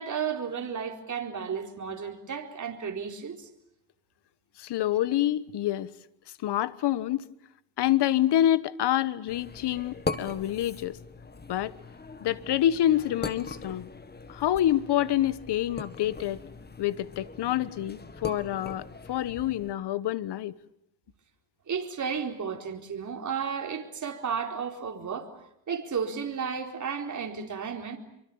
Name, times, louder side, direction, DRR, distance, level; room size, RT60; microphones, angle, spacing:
voice 1, 0.0-3.5 21.7-28.0, right 6 dB, 40° right, 4.2 m, -33 dB
voice 2, 4.6-5.9 6.4-7.2 7.8-11.0 11.5-11.7 12.2-13.9 14.3-16.4 16.8-20.5, left 12 dB, 60° left, 1.3 m, -27 dB
sound 1, 9.3-19.7, left 4 dB, 20° left, 1.9 m, -40 dB
26.5 x 24.0 x 8.7 m
cardioid pair, 105°, 45 cm